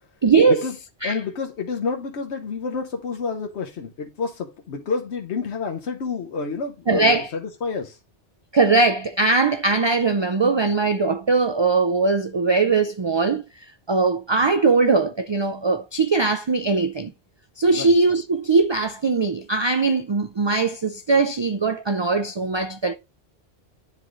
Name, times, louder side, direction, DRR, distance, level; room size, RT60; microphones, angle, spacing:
voice 1, 0.2-0.6 1.0-1.2 6.9-7.3 8.5-17.1 17.6-22.9, right 3 dB, 45° right, 0.3 m, -20 dB
voice 2, 1.0-8.0 17.7-17.9, left 4 dB, 85° left, 1.2 m, -29 dB
10.5 x 3.7 x 3.1 m
omnidirectional pair, 1.1 m